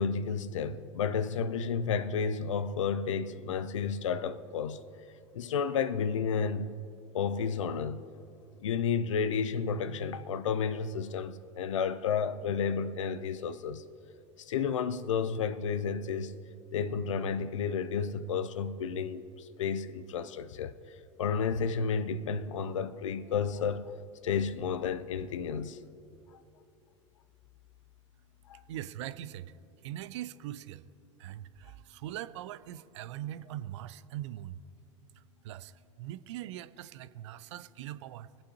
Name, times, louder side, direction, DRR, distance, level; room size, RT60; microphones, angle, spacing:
voice 1, 0.0-4.8 5.3-6.7 7.1-8.0 8.6-13.8 14.4-16.4 16.7-20.7 21.2-23.9 24.2-25.8 28.5-28.6, left 6 dB, 75° left, 0.5 m, -31 dB
voice 2, 28.7-30.9 31.2-34.6 35.1-38.4, right 12 dB, 65° right, 0.4 m, -42 dB
23.5 x 8.7 x 2.9 m
hypercardioid pair, 85°, 16 cm